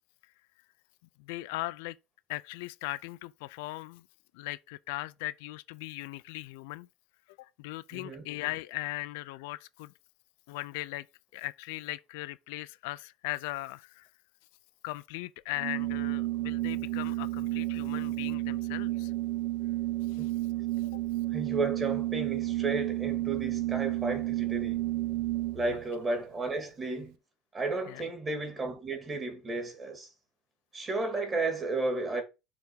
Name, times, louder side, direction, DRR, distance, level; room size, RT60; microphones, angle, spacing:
voice 1, 1.2-2.0 2.3-4.0 4.3-6.9 7.4-9.9 10.5-11.1 11.3-14.1 14.8-19.1 20.1-20.3 20.8-20.9 25.7-25.8 27.9-28.1, left 19 dB, 85° left, 0.4 m, -39 dB
voice 2, 7.9-8.2 20.2-20.3 21.3-24.8 25.5-27.2 27.5-30.1 30.7-32.2, right 3 dB, 25° right, 2.2 m, -33 dB
Organ, 15.6-25.8, right 17 dB, 70° right, 0.6 m, -31 dB
6.8 x 3.5 x 6.3 m
cardioid pair, 135°, 0 cm